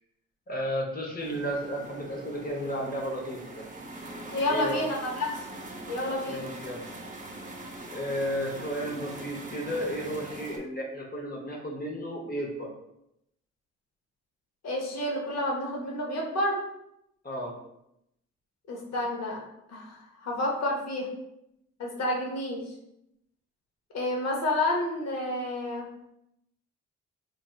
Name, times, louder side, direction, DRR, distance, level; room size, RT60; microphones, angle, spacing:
voice 1, 0.5-3.6 4.5-4.9 6.3-6.9 7.9-12.7 17.2-17.5, equal, 30° left, -2 dB, 0.7 m, -33 dB
sound 1, 1.2-10.6, right 2 dB, 25° right, 0.6 m, -42 dB
voice 2, 4.3-5.4 5.9-6.5 14.6-16.6 18.7-19.4 19.7-21.1 21.8-22.7 23.9-25.9, left 1 dB, 60° left, -1 dB, 0.9 m, -30 dB
3.1 x 2.5 x 2.2 m, 0.81 s
supercardioid pair, 60°, 29 cm